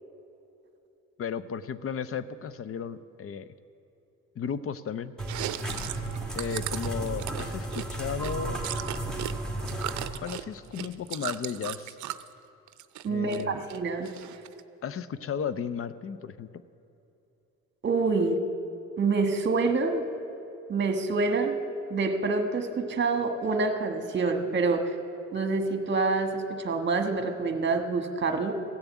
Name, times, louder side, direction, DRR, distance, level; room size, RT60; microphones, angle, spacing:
voice 1, 1.2-3.5 4.4-5.1 6.4-8.6 10.2-12.0 13.1-13.6 14.8-16.5, left 7 dB, 50° left, 14 dB, 0.6 m, -34 dB
sound 1, 5.2-10.1, right 2 dB, ahead, 2.2 m, -34 dB
Chewing mastication, 5.2-9.3 9.6-12.3 12.7-13.4 13.7-14.6, right 13 dB, 70° right, 0.6 m, -37 dB
voice 2, 13.0-14.1 17.8-18.4 19.0-20.0 20.7-21.5 21.9-24.9 25.3-28.5, right 3 dB, 40° right, 6 dB, 1.3 m, -27 dB
16.0 x 7.0 x 8.3 m, 2.8 s
cardioid pair, 90°, 30 cm